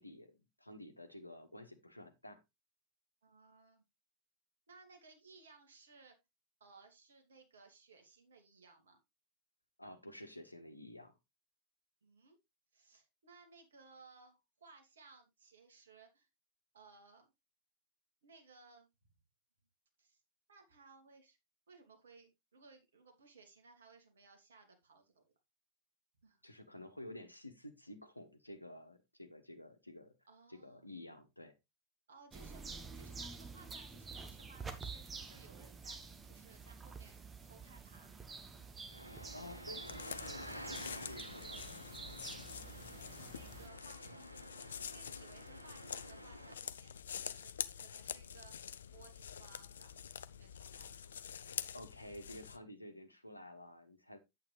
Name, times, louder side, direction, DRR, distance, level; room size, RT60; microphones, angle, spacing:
voice 1, 0.0-2.4 9.8-11.1 26.4-30.1 30.5-31.5 39.3-41.9 51.7-54.2, left 1 dB, 85° left, 8 dB, 1.3 m, -52 dB
voice 2, 3.2-3.8 4.7-6.2 6.6-9.0 12.0-12.4 12.7-16.3 16.7-17.3 18.2-18.9 20.0-20.2 20.5-21.4 21.7-25.2 26.2-26.4 30.3-30.8 32.1-38.1 43.0-51.1, right 4 dB, 65° right, 5 dB, 2.6 m, -61 dB
sound 1, 32.3-43.7, right 4 dB, 15° right, 1.5 m, -49 dB
sound 2, 38.9-46.5, equal, 85° right, 0.9 m, -51 dB
sound 3, 39.9-52.6, left 8 dB, 65° left, 0.5 m, -47 dB
8.7 x 8.7 x 3.2 m, 0.22 s
figure-of-eight pair, 90°, 0 cm